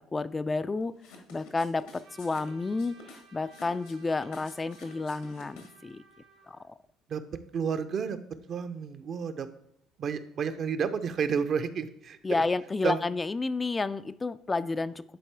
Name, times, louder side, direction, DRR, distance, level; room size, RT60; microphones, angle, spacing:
voice 1, 0.1-0.9 1.3-6.0 6.5-6.7 12.2-15.2, left 3 dB, 25° left, 12 dB, 0.3 m, -31 dB
sound 1, 1.0-5.9, left 3 dB, 80° left, 1.5 m, -51 dB
Trumpet, 2.0-6.7, right 5 dB, 75° right, 2.6 m, -57 dB
voice 2, 7.5-8.2 8.5-9.5 10.0-12.2 12.8-13.0, right 6 dB, 50° right, 10 dB, 0.6 m, -30 dB
10.0 x 4.2 x 3.4 m, 0.75 s
hypercardioid pair, 60°, 0 cm